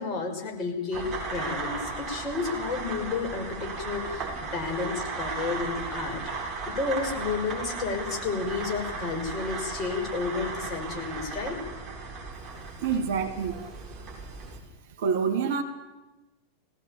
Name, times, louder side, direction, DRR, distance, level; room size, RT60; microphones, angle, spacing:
voice 1, 0.0-11.6, left 4 dB, 30° left, 6.0 m, -31 dB
sound 1, 0.9-14.6, right 4 dB, 25° right, 7.6 m, -36 dB
voice 2, 12.8-13.6 15.0-15.6, right 6 dB, 55° right, 2.6 m, -26 dB
20.5 x 17.5 x 8.7 m
figure-of-eight pair, 90°, 0 cm